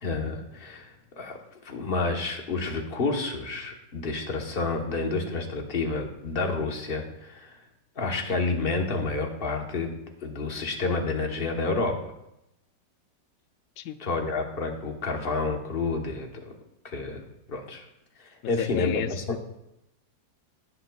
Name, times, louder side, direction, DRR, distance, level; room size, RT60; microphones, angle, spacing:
voice 1, 0.0-7.6 8.0-9.9 10.2-12.0 14.0-16.5 16.8-17.2 17.5-17.9 18.2-19.4, left 3 dB, 35° left, 3 dB, 1.2 m, -29 dB
voice 2, 18.4-19.4, left 10 dB, 70° left, 11 dB, 0.9 m, -32 dB
17.5 x 7.7 x 2.3 m, 0.85 s
omnidirectional pair, 1.9 m